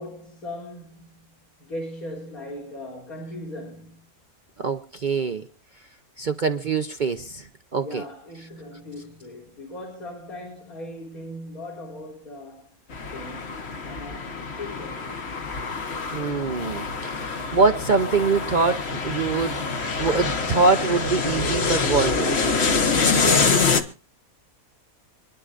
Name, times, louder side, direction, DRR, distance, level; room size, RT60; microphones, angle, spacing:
voice 1, 0.0-4.1 7.8-12.7 13.1-15.4, left 1 dB, 75° left, 4.8 m, -39 dB
voice 2, 4.6-5.5 6.2-8.0 16.1-19.6 20.0-22.4, right 4 dB, 45° right, 0.6 m, -24 dB
sound 1, 12.9-23.8, left 4 dB, 50° left, 1.4 m, -25 dB
26.5 x 11.0 x 2.5 m
omnidirectional pair, 1.5 m